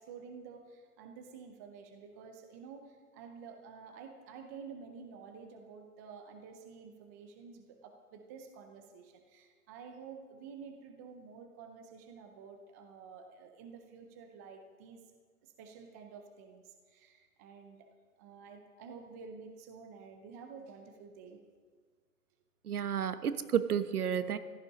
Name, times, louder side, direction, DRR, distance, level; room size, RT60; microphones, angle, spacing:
voice 1, 0.0-15.0 15.4-17.9 18.2-21.4 22.7-22.9, right 5 dB, 10° right, 5 dB, 0.5 m, -50 dB
voice 2, 22.6-24.4, right 8 dB, 70° right, 11 dB, 1.2 m, -31 dB
15.5 x 11.5 x 5.4 m, 1.5 s
hypercardioid pair, 140°, 46 cm